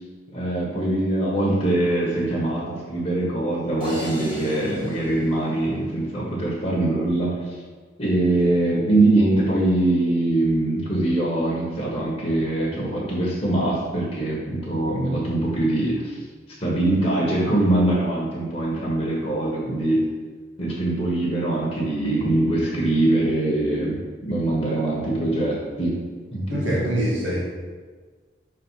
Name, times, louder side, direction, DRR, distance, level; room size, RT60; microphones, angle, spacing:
voice 1, 0.3-7.6 8.0-16.2 16.6-20.0 20.6-26.0 26.3-26.9, right 2 dB, 30° left, -5 dB, 1.3 m, -23 dB
sound 1, 3.8-6.1, equal, 30° right, 1.5 m, -38 dB
voice 2, 26.5-27.5, equal, 85° right, -6 dB, 1.6 m, -24 dB
5.7 x 3.7 x 5.7 m, 1.5 s
head